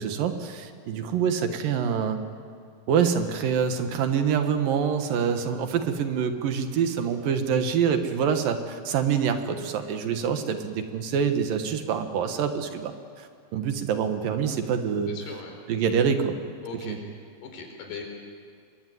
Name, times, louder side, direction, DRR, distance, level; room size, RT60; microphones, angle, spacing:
voice 1, 0.0-2.2 2.9-15.1 15.7-16.4 16.7-17.0, right 7 dB, 70° right, 7 dB, 2.9 m, -26 dB
voice 2, 15.1-15.5 16.6-17.0 17.4-18.0, left 5 dB, 85° left, 3 dB, 6.1 m, -39 dB
24.5 x 22.0 x 9.4 m, 2.1 s
omnidirectional pair, 4.4 m